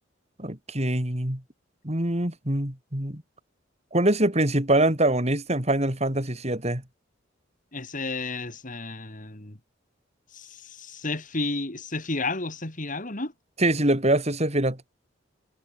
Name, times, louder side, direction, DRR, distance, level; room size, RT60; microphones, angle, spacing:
voice 1, 0.4-1.4 1.8-3.2 3.9-6.8 13.6-14.8, right 1 dB, 35° right, 4.2 m, -24 dB
voice 2, 7.7-9.6 10.3-13.3, left 3 dB, 40° left, 2.9 m, -32 dB
head